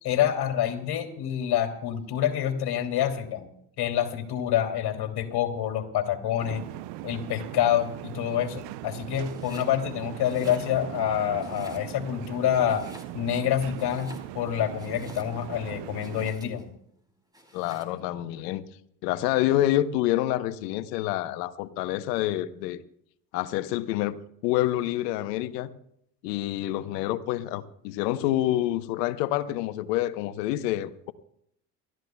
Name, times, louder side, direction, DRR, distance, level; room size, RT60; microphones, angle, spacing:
voice 1, 0.0-3.4 3.8-6.6 7.0-12.9 13.1-16.6, left 10 dB, 50° left, 4 dB, 2.8 m, -27 dB
sound 1, 6.4-16.3, right 16 dB, 55° right, 0.7 m, -39 dB
Domestic sounds home sounds, 9.2-9.8 10.1-11.0 11.4-12.2 12.6-13.4 13.7-15.5 16.0-16.7 17.3-18.0, equal, 10° right, 4.5 m, -50 dB
voice 2, 17.5-18.7 19.0-22.8 23.3-24.2 24.4-25.7 26.2-31.1, left 14 dB, 75° left, 12 dB, 1.0 m, -27 dB
28.0 x 13.5 x 2.3 m, 0.73 s
hypercardioid pair, 70°, 49 cm